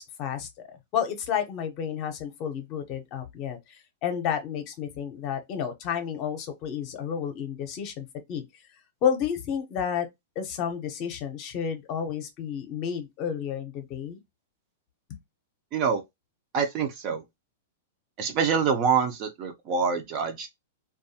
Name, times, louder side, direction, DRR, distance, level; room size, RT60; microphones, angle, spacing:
voice 1, 0.0-8.4 9.0-10.1 10.4-14.2, left 8 dB, 35° left, 0.7 m, -31 dB
voice 2, 15.7-16.0 16.5-17.2 18.2-20.5, right 6 dB, 35° right, 0.5 m, -25 dB
2.6 x 2.3 x 2.7 m
hypercardioid pair, 150°, 0 cm